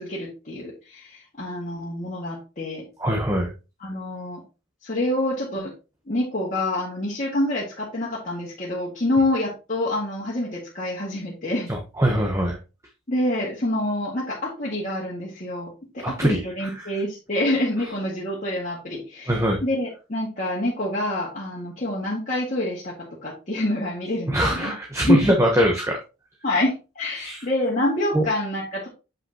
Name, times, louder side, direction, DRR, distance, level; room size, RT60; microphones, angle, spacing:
voice 1, 0.0-2.9 3.8-4.4 4.8-5.7 6.1-11.7 13.1-23.0 23.2-24.7 25.1-25.3 26.4-28.9, left 1 dB, 40° left, -6 dB, 1.9 m, -27 dB
voice 2, 3.0-3.5 11.7-12.6 16.0-16.9 19.3-19.6 24.3-26.0 27.2-27.4 28.1-28.3, equal, 15° right, 1 dB, 1.1 m, -22 dB
7.8 x 5.8 x 2.9 m, 0.30 s
head